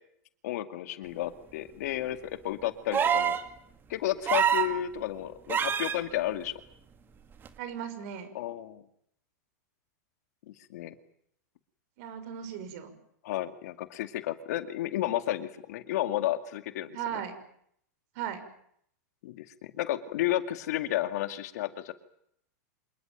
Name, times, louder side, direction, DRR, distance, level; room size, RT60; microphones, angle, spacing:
voice 1, 0.4-3.4 3.9-6.6 8.3-8.8 10.5-11.0 13.2-17.0 19.2-21.9, left 13 dB, 65° left, 9 dB, 2.3 m, -32 dB
sound 1, 2.9-3.5 4.3-4.8 5.5-6.0 7.5-7.6, right 8 dB, 20° right, 2.0 m, -25 dB
voice 2, 7.6-8.3 12.0-12.9 16.9-17.3 18.1-18.4, right 9 dB, 55° right, 10 dB, 6.1 m, -36 dB
27.0 x 19.5 x 9.3 m, 0.70 s
supercardioid pair, 135°, 9 cm